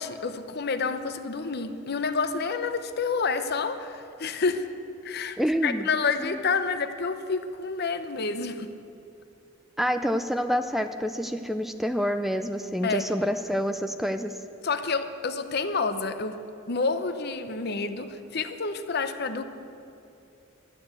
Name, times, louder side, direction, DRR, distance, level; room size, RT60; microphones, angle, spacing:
voice 1, 0.0-4.7 5.0-5.4 5.6-8.7 12.8-13.1 14.6-16.4 16.7-19.4, left 4 dB, 55° left, 9 dB, 0.8 m, -29 dB
voice 2, 5.4-5.9 6.2-6.5 9.8-14.3, equal, ahead, 8 dB, 0.4 m, -27 dB
11.5 x 10.0 x 8.1 m, 2.7 s
head